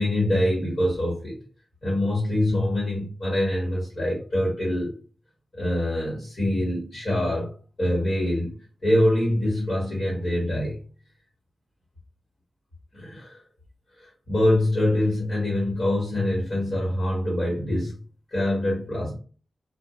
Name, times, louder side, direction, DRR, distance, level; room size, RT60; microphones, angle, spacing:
voice 1, 0.0-1.4 1.8-5.0 5.5-7.5 7.8-8.5 8.8-10.8 12.9-13.4 14.0-17.9 18.3-19.2, left 1 dB, 40° left, 1.2 m, -24 dB
2.4 x 2.3 x 2.9 m
wide cardioid pair, 140°, 0 cm